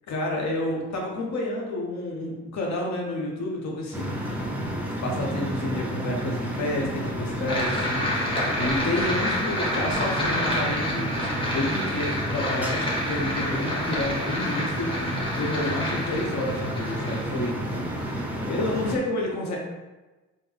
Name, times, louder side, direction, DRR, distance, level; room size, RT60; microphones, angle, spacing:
voice 1, 0.1-4.2 5.0-17.6 18.0-19.6, left 1 dB, 65° left, -1 dB, 0.9 m, -30 dB
sound 1, 3.9-19.0, equal, 5° right, 0.5 m, -31 dB
sound 2, 7.5-18.4, left 1 dB, 15° left, 1.0 m, -29 dB
3.5 x 2.1 x 3.2 m, 1.2 s
cardioid pair, 90°, 30 cm